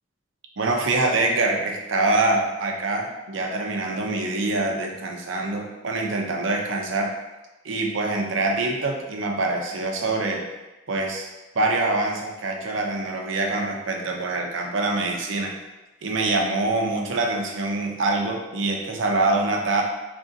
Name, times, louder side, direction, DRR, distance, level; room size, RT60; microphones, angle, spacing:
voice 1, 0.6-7.2 7.6-10.5 10.9-11.3 11.5-15.5 16.0-19.8, right 2 dB, 85° right, 1 dB, 0.7 m, -25 dB
5.0 x 3.4 x 2.7 m, 1.1 s
head